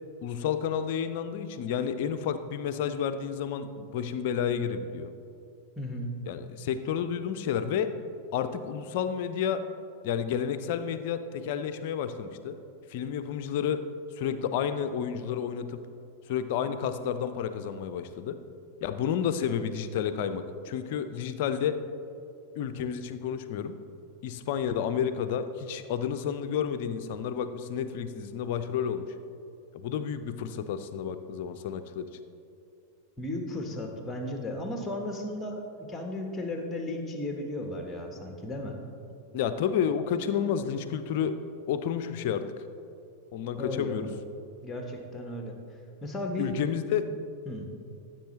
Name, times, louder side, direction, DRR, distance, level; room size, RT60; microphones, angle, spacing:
voice 1, 0.2-5.1 6.3-7.9 8.3-9.6 10.0-12.6 12.9-13.8 14.2-15.8 16.3-18.4 18.8-21.8 22.6-23.7 24.2-29.1 29.7-32.1 39.3-41.4 41.7-42.4 43.3-44.1 46.4-47.1, left 8 dB, 50° left, 10 dB, 0.5 m, -30 dB
voice 2, 5.8-6.2 33.2-38.8 43.6-44.2 44.6-45.6 46.0-46.8 47.5-47.7, left 1 dB, 15° left, 3 dB, 1.3 m, -35 dB
14.5 x 7.4 x 3.2 m, 2.6 s
figure-of-eight pair, 90°, 0 cm